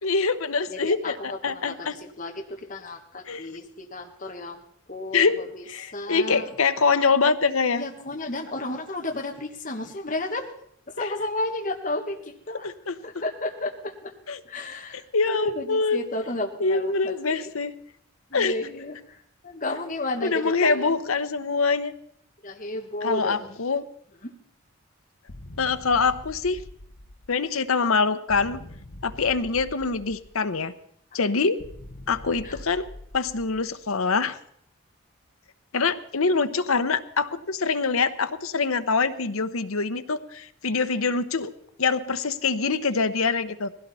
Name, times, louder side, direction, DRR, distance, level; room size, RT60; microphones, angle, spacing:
voice 1, 0.0-2.0 3.3-3.5 5.1-5.4 5.7-7.8 11.0-11.1 12.6-12.9 14.3-14.4 14.9-16.0 16.6-17.8 18.3-18.6 20.2-21.9 23.0-23.9 25.6-26.6 27.3-28.6 29.0-30.7 31.1-31.6 32.1-32.9 33.1-34.4 35.7-41.5 41.8-43.7, left 4 dB, 90° left, 10 dB, 1.0 m, -24 dB
voice 2, 0.7-4.6 4.9-5.6 5.9-6.5 7.7-10.5 10.9-12.7 13.0-14.1 14.4-17.5 18.3-19.2 19.4-21.0 22.4-23.5 24.2-24.3 32.4-32.6, left 2 dB, 40° left, 2 dB, 1.5 m, -32 dB
sound 1, 25.3-27.6 28.3-30.6 31.6-33.9, left 1 dB, 65° left, 1.2 m, -44 dB
20.5 x 16.5 x 4.2 m, 0.68 s
head